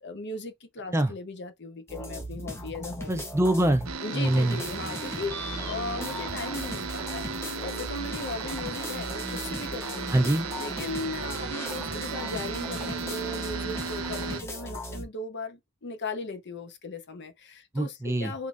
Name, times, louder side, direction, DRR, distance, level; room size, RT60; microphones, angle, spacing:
voice 1, 0.0-3.2 4.0-7.3 7.6-10.1 10.6-18.5, left 3 dB, 55° left, 0.9 m, -37 dB
sound 1, 1.9-4.0 4.3-15.0, equal, 15° left, 0.9 m, -38 dB
voice 2, 3.1-3.9 4.1-4.6 10.1-10.5 17.7-18.3, right 1 dB, 15° right, 0.5 m, -24 dB
sound 2, 3.9-14.4, right 5 dB, 85° right, 0.7 m, -35 dB
3.8 x 3.5 x 2.4 m
head